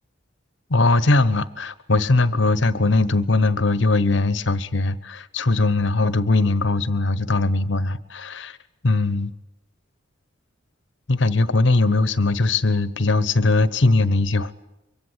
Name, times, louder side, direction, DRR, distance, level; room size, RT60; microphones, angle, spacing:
voice 1, 0.7-8.6 8.8-9.3 11.1-14.5, left 3 dB, 65° left, 16 dB, 1.1 m, -20 dB
25.0 x 23.5 x 8.2 m, 0.94 s
head